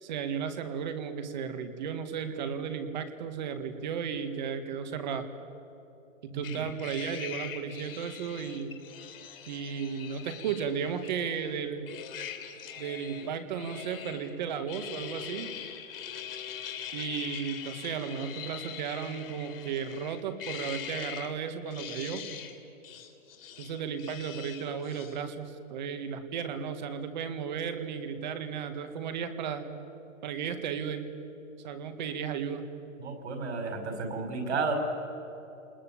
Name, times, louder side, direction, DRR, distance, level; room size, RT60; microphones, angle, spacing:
voice 1, 0.0-5.3 6.2-8.8 9.4-11.9 12.8-15.6 16.9-22.2 23.6-29.7 30.2-31.1 31.6-32.6, right 7 dB, 35° right, 9 dB, 1.9 m, -34 dB
voice 2, 6.3-6.6 33.0-34.7, right 4 dB, 60° right, 5 dB, 5.5 m, -32 dB
sound 1, 6.4-11.6 11.9-14.3 14.7-21.3 21.7-22.6 22.8-25.2, left 9 dB, 45° left, 3.3 m, -42 dB
29.5 x 21.0 x 8.7 m, 3.0 s
hypercardioid pair, 170°, 39 cm